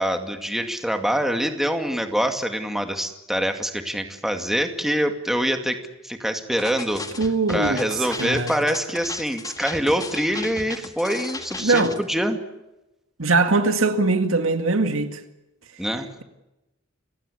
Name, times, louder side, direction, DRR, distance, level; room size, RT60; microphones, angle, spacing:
voice 1, 0.0-7.1 7.5-12.4 15.8-16.1, equal, ahead, 2.3 m, -25 dB
sound 1, 6.6-12.0, left 3 dB, 20° left, 1.7 m, -36 dB
voice 2, 7.2-7.8 8.2-8.5 11.6-11.9 13.2-15.2, right 3 dB, 75° right, 2.2 m, -21 dB
29.5 x 17.0 x 8.5 m
head